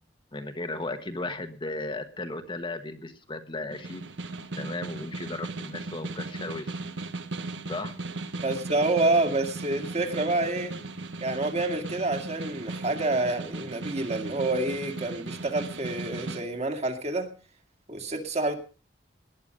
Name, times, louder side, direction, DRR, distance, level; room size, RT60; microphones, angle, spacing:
voice 1, 0.3-4.0 4.6-6.8 7.7-8.0, left 2 dB, 25° left, 7 dB, 1.3 m, -35 dB
Snare drum, 3.7-16.4, right 2 dB, 80° right, 1.3 m, -37 dB
voice 2, 8.3-10.7 11.2-17.3 17.9-18.6, right 2 dB, 40° right, 5 dB, 2.3 m, -28 dB
19.0 x 10.5 x 5.2 m, 0.37 s
head